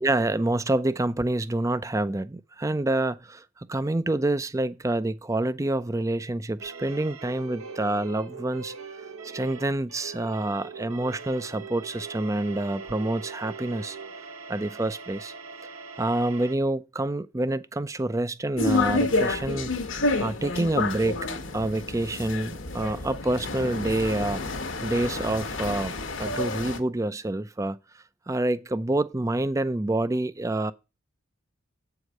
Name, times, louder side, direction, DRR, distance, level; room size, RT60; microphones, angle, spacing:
voice 1, 0.0-8.7 9.2-14.0 14.5-15.3 16.0-19.7 20.2-21.3 21.5-24.4 24.8-27.8 28.3-30.7, right 2 dB, 15° right, 0.4 m, -27 dB
sound 1, 6.6-16.6, right 4 dB, 85° right, 1.0 m, -41 dB
sound 2, 18.6-26.8, left 3 dB, 65° left, 1.2 m, -29 dB
8.2 x 4.8 x 6.4 m
head